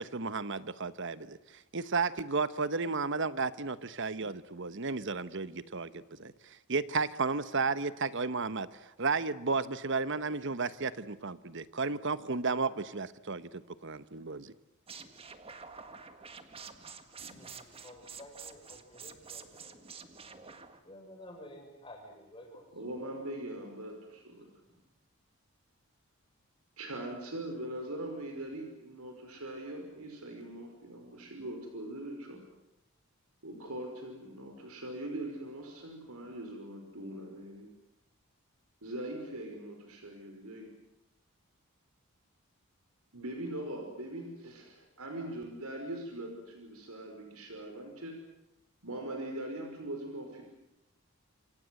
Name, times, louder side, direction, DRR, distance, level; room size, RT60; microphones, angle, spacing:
voice 1, 0.0-14.5, right 4 dB, 55° right, 14 dB, 1.1 m, -33 dB
sound 1, 14.9-20.8, right 5 dB, 25° right, 1.8 m, -48 dB
voice 2, 17.3-20.6 20.8-22.6 23.0-23.1 24.7-24.9, left 1 dB, 20° left, 2 dB, 6.6 m, -52 dB
voice 3, 22.7-24.5 26.8-32.4 33.4-37.7 38.8-40.7 43.1-48.1 48.8-50.4, right 1 dB, 80° right, 3 dB, 5.4 m, -41 dB
28.5 x 24.5 x 7.9 m, 0.87 s
head